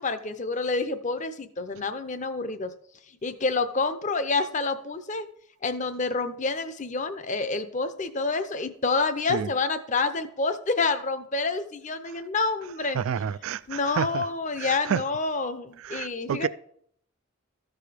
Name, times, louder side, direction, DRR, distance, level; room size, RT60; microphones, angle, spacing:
voice 1, 0.0-2.7 3.2-5.3 5.6-13.0 13.7-16.5, left 3 dB, 35° left, 0.6 m, -28 dB
voice 2, 12.9-14.2 14.6-15.0 15.8-16.5, right 8 dB, 70° right, 0.3 m, -29 dB
13.5 x 4.9 x 5.0 m
head